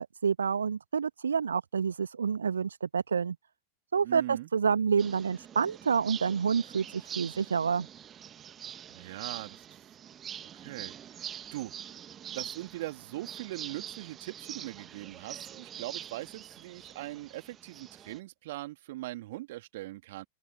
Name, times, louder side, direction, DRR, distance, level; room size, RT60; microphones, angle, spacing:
voice 1, 0.0-3.3 3.9-7.9, right 6 dB, 70° right, 1.1 m, -28 dB
voice 2, 4.0-4.5 8.9-9.8 10.5-11.7 12.3-20.2, right 17 dB, 55° right, 2.6 m, -41 dB
sound 1, 5.0-18.2, right 9 dB, 25° right, 1.6 m, -45 dB
open air
figure-of-eight pair, 90°, 0 cm